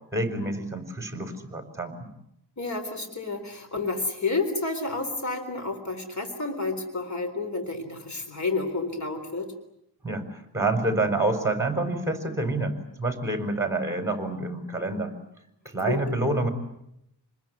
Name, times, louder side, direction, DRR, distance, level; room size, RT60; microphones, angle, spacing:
voice 1, 0.1-2.1 10.0-15.1 15.6-16.5, right 2 dB, 5° right, 6 dB, 4.7 m, -28 dB
voice 2, 2.6-9.5 15.9-16.0, left 3 dB, 45° left, 6 dB, 3.7 m, -30 dB
27.0 x 21.0 x 9.5 m, 0.79 s
wide cardioid pair, 120°, 41 cm